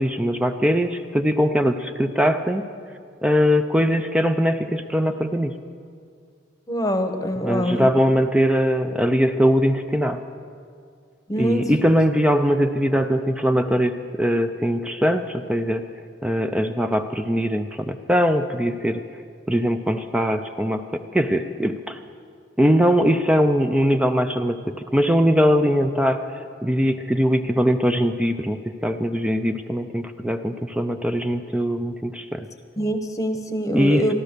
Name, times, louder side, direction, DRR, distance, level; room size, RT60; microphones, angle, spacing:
voice 1, 0.0-2.6 3.2-5.5 7.4-10.2 11.4-15.9 16.2-19.0 19.5-22.0 22.6-26.3 26.6-32.5 33.7-34.1, equal, 5° right, 7 dB, 0.4 m, -21 dB
voice 2, 6.7-7.9 11.3-11.7 32.8-34.1, equal, 15° left, 6 dB, 1.0 m, -24 dB
14.0 x 12.5 x 6.6 m, 2.2 s
head